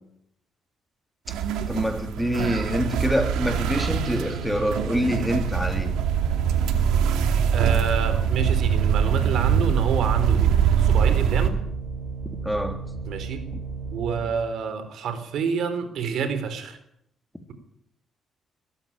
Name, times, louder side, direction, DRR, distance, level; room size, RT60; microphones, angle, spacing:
sound 1, 1.3-11.5, right 8 dB, 90° right, 2.4 m, -23 dB
voice 1, 1.7-5.9 12.4-12.8, equal, 5° left, 3.4 m, -26 dB
sound 2, 2.1-14.2, right 4 dB, 50° right, 6.1 m, -34 dB
voice 2, 7.5-11.6 13.1-13.4 13.9-16.8, right 6 dB, 75° right, 3.9 m, -28 dB
22.0 x 14.5 x 8.9 m
cardioid pair, 90°, 0 cm